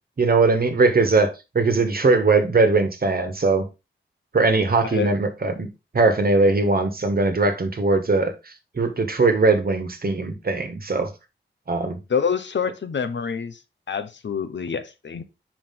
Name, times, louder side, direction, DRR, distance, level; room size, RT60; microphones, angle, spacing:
voice 1, 0.2-3.7 4.3-5.7 5.9-11.1 11.7-12.0, right 3 dB, 50° right, 1.3 m, -20 dB
voice 2, 12.1-13.6 13.9-15.2, left 6 dB, 65° left, 0.8 m, -26 dB
5.7 x 4.9 x 3.7 m
cardioid pair, 70°, 20 cm